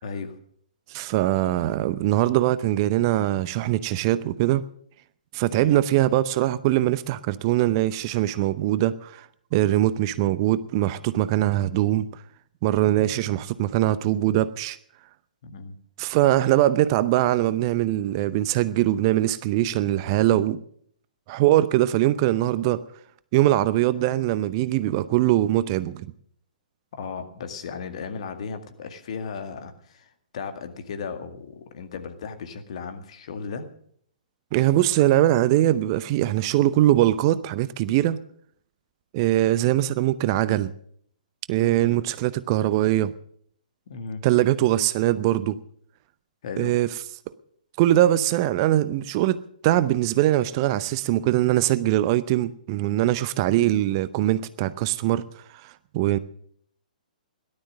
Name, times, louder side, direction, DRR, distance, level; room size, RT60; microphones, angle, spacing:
voice 1, 0.0-0.4 5.5-5.8 15.4-15.8 26.9-33.7 41.8-42.0 43.9-44.2 46.4-46.7, left 5 dB, 50° left, 2.1 m, -35 dB
voice 2, 0.9-4.6 5.3-9.3 9.5-12.1 12.6-14.8 16.0-20.6 21.3-22.8 23.3-26.1 34.5-38.2 39.1-40.7 41.5-43.1 44.2-45.6 46.6-46.9 47.8-55.2 55.6-56.2, right 14 dB, 30° right, 0.7 m, -22 dB
18.0 x 12.0 x 6.5 m
figure-of-eight pair, 120°, 5 cm